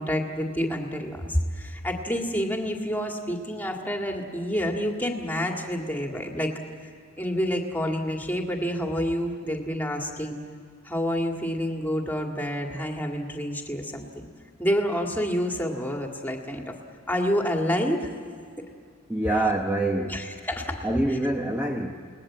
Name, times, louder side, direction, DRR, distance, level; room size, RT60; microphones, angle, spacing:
voice 1, 0.0-6.5 7.2-10.4 10.8-14.3 14.6-16.8 17.1-18.1 20.1-20.9, equal, 10° left, 2 dB, 2.0 m, -28 dB
voice 2, 19.1-20.2 20.8-22.0, right 1 dB, 10° right, 1 dB, 1.0 m, -25 dB
29.5 x 20.0 x 7.5 m, 2.2 s
head